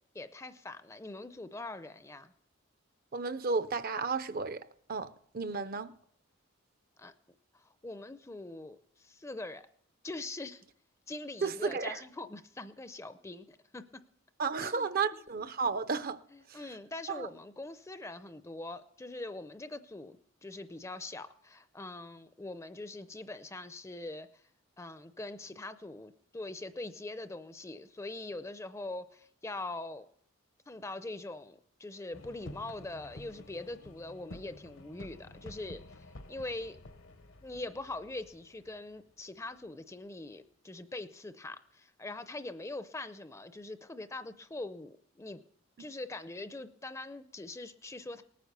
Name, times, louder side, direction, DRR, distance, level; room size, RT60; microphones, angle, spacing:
voice 1, 0.1-2.3 5.5-5.7 7.0-7.1 7.5-9.6 10.0-10.6 11.1-14.0 14.6-14.9 16.3-24.3 24.8-30.1 30.7-36.8 37.4-45.4 45.8-48.2, left 2 dB, 15° left, 0.5 m, -43 dB
voice 2, 3.1-4.6 4.9-5.9 11.4-12.0 14.4-16.2 16.5-16.6 17.1-17.3, right 4 dB, 45° right, 0.6 m, -33 dB
sound 1, 32.1-39.6, left 1 dB, 70° left, 1.0 m, -51 dB
19.0 x 9.4 x 6.7 m
head